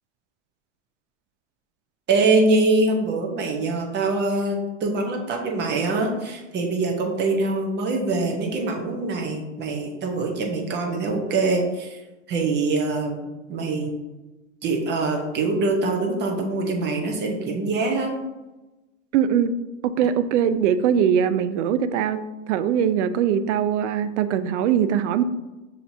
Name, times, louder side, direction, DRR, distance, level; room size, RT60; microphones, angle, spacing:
voice 1, 2.1-12.0 12.3-14.0 14.6-18.1, right 3 dB, 30° right, 1 dB, 0.8 m, -24 dB
voice 2, 19.1-19.5 19.8-22.2 22.5-25.2, right 8 dB, 70° right, 13 dB, 0.5 m, -21 dB
6.5 x 2.9 x 2.7 m, 1.1 s
hypercardioid pair, 120°, 36 cm